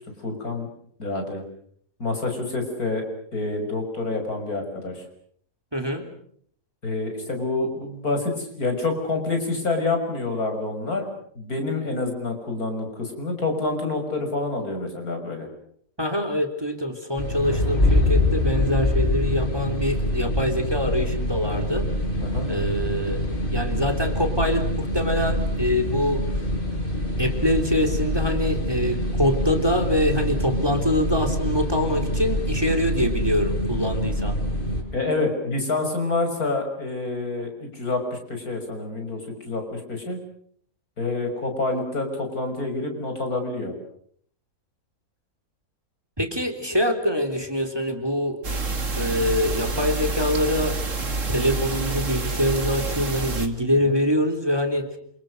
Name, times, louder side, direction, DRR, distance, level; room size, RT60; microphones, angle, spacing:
voice 1, 0.2-0.7 1.0-1.4 2.0-3.0 3.3-5.0 6.8-11.1 11.3-15.5 22.2-22.5 34.9-40.2 41.0-43.7 53.8-54.0, left 3 dB, 80° left, 4 dB, 6.7 m, -27 dB
voice 2, 5.7-6.1 16.0-21.8 22.5-26.2 27.2-34.4 46.2-48.4 49.0-55.0, left 1 dB, 15° right, 7 dB, 3.5 m, -24 dB
sound 1, 17.2-34.8, left 1 dB, 35° left, 7.1 m, -25 dB
sound 2, 48.4-53.5, right 3 dB, 55° right, 2.7 m, -28 dB
28.0 x 28.0 x 6.5 m, 0.64 s
omnidirectional pair, 1.5 m